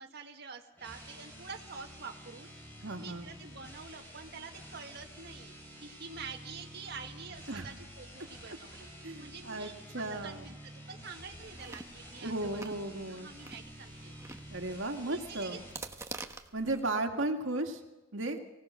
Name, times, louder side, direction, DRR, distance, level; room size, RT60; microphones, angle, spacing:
voice 1, 0.0-2.5 2.8-5.5 5.8-8.9 9.2-12.8 13.1-14.1 15.0-15.6, right 5 dB, 55° right, 2 dB, 1.6 m, -47 dB
sound 1, 0.7-15.9, equal, 10° left, 7.8 m, -50 dB
voice 2, 2.8-3.3 7.5-7.7 8.5-8.6 9.0-10.5 12.2-13.3 14.5-15.6 16.5-17.8 18.1-18.4, right 2 dB, 75° right, 4 dB, 2.2 m, -35 dB
Chewing mastication, 11.4-16.8, right 3 dB, 15° right, 1.1 m, -48 dB
24.5 x 17.5 x 6.3 m, 1.1 s
head